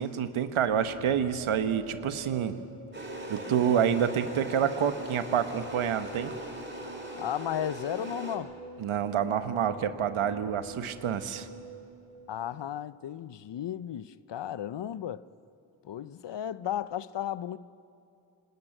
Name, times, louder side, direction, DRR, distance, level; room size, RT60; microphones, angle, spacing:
voice 1, 0.0-2.6 3.3-6.3 8.8-11.5, right 8 dB, 85° right, 1.1 m, -28 dB
sound 1, 0.7-12.7, right 1 dB, 60° right, 3.7 m, -46 dB
sound 2, 2.9-8.4, right 1 dB, 25° right, 4.2 m, -41 dB
voice 2, 7.1-8.5 12.3-15.3 15.8-17.6, left 10 dB, 60° left, 0.7 m, -34 dB
25.5 x 12.5 x 9.1 m
cardioid pair, 45°, 48 cm